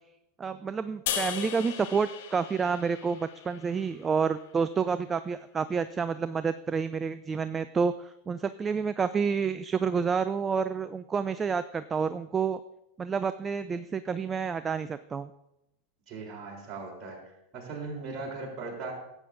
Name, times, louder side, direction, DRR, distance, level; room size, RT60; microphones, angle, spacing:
voice 1, 0.4-12.6 13.0-15.3, right 5 dB, 20° right, 13 dB, 0.3 m, -29 dB
sound 1, 1.1-4.3, left 9 dB, 60° left, 0.9 m, -37 dB
voice 2, 16.1-17.2 17.5-18.9, right 3 dB, 35° right, -1 dB, 3.4 m, -38 dB
15.5 x 8.4 x 2.6 m, 0.87 s
figure-of-eight pair, 85°, 0 cm